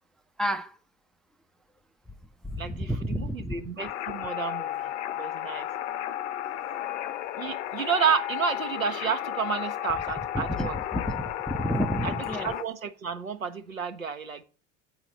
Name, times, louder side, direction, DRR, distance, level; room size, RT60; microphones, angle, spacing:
voice 1, 0.4-0.8 2.5-3.5 6.7-6.8 10.3-12.5, equal, ahead, 0.4 m, -30 dB
voice 2, 2.6-4.8 5.2-5.7 7.4-10.7 12.0-12.1 12.4-14.4, right 6 dB, 90° right, 0.9 m, -30 dB
sound 1, 3.8-12.6, left 12 dB, 60° left, 0.7 m, -33 dB
7.8 x 4.8 x 6.7 m
figure-of-eight pair, 75°, 39 cm